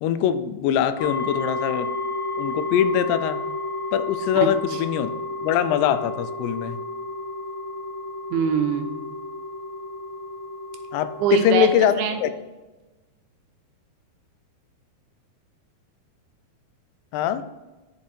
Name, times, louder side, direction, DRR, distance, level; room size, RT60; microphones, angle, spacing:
voice 1, 0.0-1.9 2.4-3.4 3.9-5.1 5.4-6.8 10.9-12.3 17.1-17.4, left 9 dB, 85° left, 11 dB, 2.6 m, -22 dB
sound 1, 1.0-11.8, left 2 dB, 70° left, 2.3 m, -31 dB
voice 2, 4.3-4.8 8.3-9.1 11.2-11.7 12.0-12.2, right 7 dB, 80° right, 5 dB, 2.7 m, -24 dB
10.5 x 5.0 x 2.7 m, 1.2 s
omnidirectional pair, 4.6 m